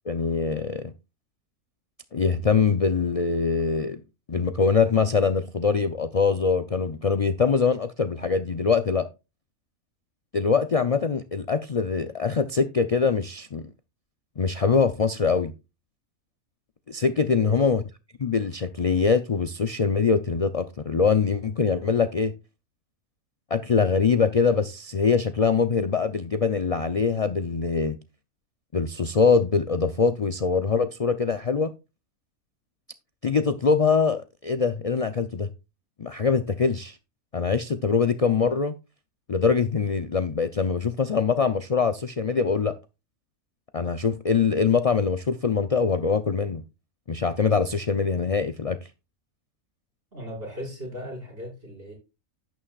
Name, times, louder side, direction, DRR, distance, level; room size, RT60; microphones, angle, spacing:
voice 1, 0.1-0.9 2.1-4.0 4.3-9.1 10.3-13.7 14.4-15.5 16.9-17.8 18.2-22.3 23.5-28.0 28.7-31.7 33.2-35.5 36.0-37.0 37.3-38.7 39.3-42.7 43.7-46.6 47.1-48.8, left 5 dB, 70° left, 0.3 m, -23 dB
voice 2, 17.3-17.7 50.1-51.9, equal, 40° right, 5.9 m, -38 dB
11.0 x 9.3 x 2.4 m
omnidirectional pair, 1.5 m